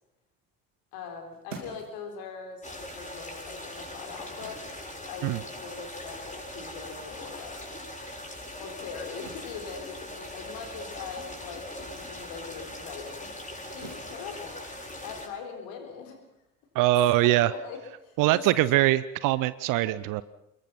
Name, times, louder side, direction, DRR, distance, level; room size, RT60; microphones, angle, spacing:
voice 1, 0.9-4.6 5.1-7.8 8.6-13.3 13.7-14.7 15.0-16.2 17.2-18.6 19.2-19.3, left 6 dB, 65° left, 4 dB, 4.1 m, -41 dB
sound 1, 0.9-7.7 8.1-18.3, right 3 dB, 85° right, 2.7 m, -52 dB
sound 2, 2.6-15.3, left 1 dB, 20° left, 7.3 m, -41 dB
voice 2, 16.7-17.5 18.2-20.2, right 15 dB, 60° right, 17 dB, 0.7 m, -23 dB
26.5 x 21.5 x 5.8 m, 0.84 s
figure-of-eight pair, 45°, 37 cm